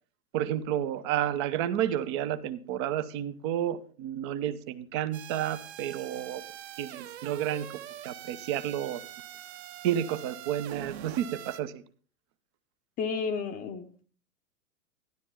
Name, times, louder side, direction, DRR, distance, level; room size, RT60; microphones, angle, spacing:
voice 1, 0.3-6.4 6.8-7.8 8.0-9.0 9.8-11.8, right 11 dB, 20° right, 13 dB, 0.4 m, -31 dB
sound 1, 5.1-11.6, right 11 dB, 45° right, 1.0 m, -44 dB
voice 2, 13.0-14.0, left 5 dB, 20° left, 5 dB, 0.7 m, -32 dB
12.5 x 10.5 x 3.5 m, 0.42 s
figure-of-eight pair, 105°, 45 cm